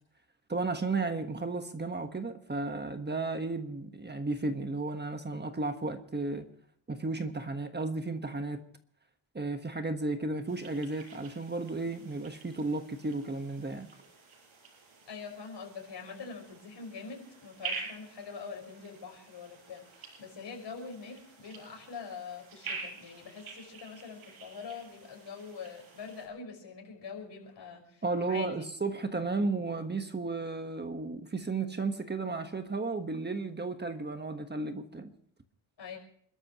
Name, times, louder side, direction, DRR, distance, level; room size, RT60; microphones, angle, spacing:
voice 1, 0.5-6.5 6.9-8.6 9.3-13.9 28.0-35.1, right 3 dB, 20° right, 1.3 m, -34 dB
sound 1, 10.5-26.3, right 5 dB, 80° right, 7.1 m, -47 dB
voice 2, 15.1-28.7 29.2-29.4 35.8-36.0, left 5 dB, 60° left, 5.5 m, -44 dB
28.0 x 13.0 x 3.0 m
wide cardioid pair, 130°, 48 cm